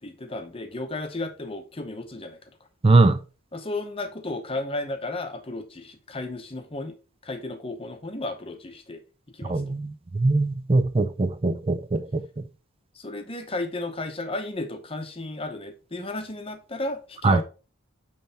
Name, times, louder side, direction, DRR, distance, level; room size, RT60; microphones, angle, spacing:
voice 1, 0.0-2.4 3.5-7.0 7.2-9.0 9.3-9.7 12.9-17.4, left 2 dB, 25° left, 0.8 m, -33 dB
voice 2, 2.8-3.2 9.5-12.2 17.2-17.4, right 3 dB, 25° right, 0.4 m, -21 dB
9.0 x 3.3 x 4.2 m
head